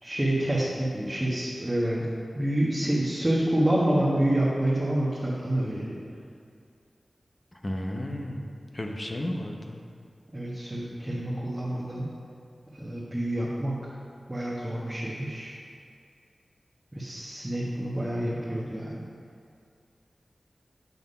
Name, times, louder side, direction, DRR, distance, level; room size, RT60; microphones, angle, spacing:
voice 1, 0.0-2.0 2.3-5.9 10.3-12.1 12.7-13.9 14.3-15.5 16.9-19.0, right 1 dB, 20° right, -7 dB, 1.3 m, -27 dB
voice 2, 7.5-8.5 8.7-9.8, left 1 dB, 35° left, 2 dB, 0.8 m, -33 dB
8.1 x 3.5 x 5.5 m, 2.3 s
cardioid pair, 40°, 0 cm